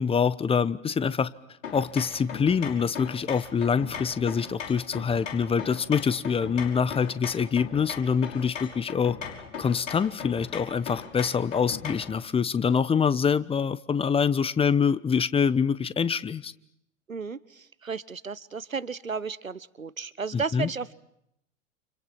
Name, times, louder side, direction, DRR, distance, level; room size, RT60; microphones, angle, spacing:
voice 1, 0.0-1.3 1.7-9.2 9.6-16.5 20.3-20.7, left 6 dB, 15° left, 1.0 m, -25 dB
sound 1, 1.6-12.2, left 7 dB, 70° left, 5.8 m, -39 dB
voice 2, 17.1-20.9, right 5 dB, 90° right, 1.2 m, -34 dB
30.0 x 29.5 x 6.0 m
figure-of-eight pair, 95°, 39 cm